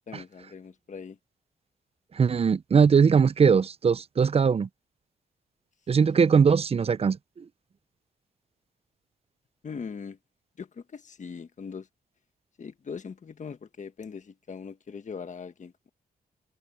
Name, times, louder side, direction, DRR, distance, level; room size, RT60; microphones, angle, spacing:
voice 1, 0.1-1.2 9.6-10.2 10.6-11.9 12.6-15.9, left 6 dB, 50° left, 1.5 m, -40 dB
voice 2, 2.1-4.7 5.9-7.4, right 6 dB, 35° right, 0.5 m, -21 dB
cardioid pair, 80°, 17 cm